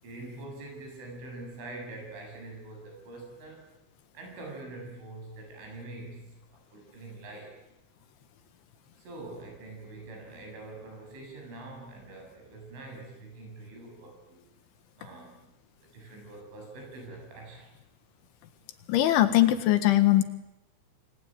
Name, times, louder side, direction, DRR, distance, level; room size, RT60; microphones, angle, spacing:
voice 1, 0.0-3.7 4.2-7.5 9.0-14.4 15.0-15.5 15.8-17.8, right 2 dB, 85° right, 2 dB, 10.5 m, -44 dB
voice 2, 18.9-20.2, left 14 dB, 80° left, 10 dB, 4.0 m, -21 dB
28.0 x 22.0 x 9.2 m, 0.90 s
omnidirectional pair, 5.4 m